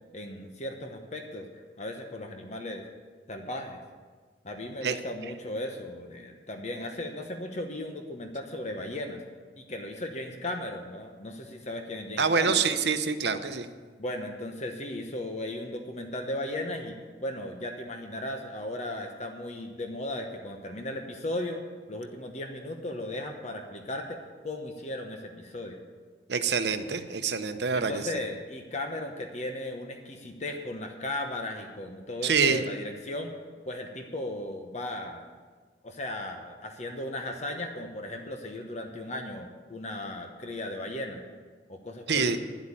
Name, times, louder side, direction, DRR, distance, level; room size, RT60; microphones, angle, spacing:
voice 1, 0.1-1.5 1.8-2.8 3.3-3.8 4.4-9.2 9.6-12.6 14.0-21.6 21.9-25.8 27.7-33.3 33.7-35.2 35.8-41.2 41.7-42.4, left 1 dB, 40° left, 4 dB, 1.0 m, -36 dB
voice 2, 12.2-13.7 26.3-28.0 32.2-32.6 42.1-42.4, right 5 dB, 65° right, 9 dB, 0.8 m, -26 dB
10.5 x 8.1 x 8.8 m, 1.5 s
head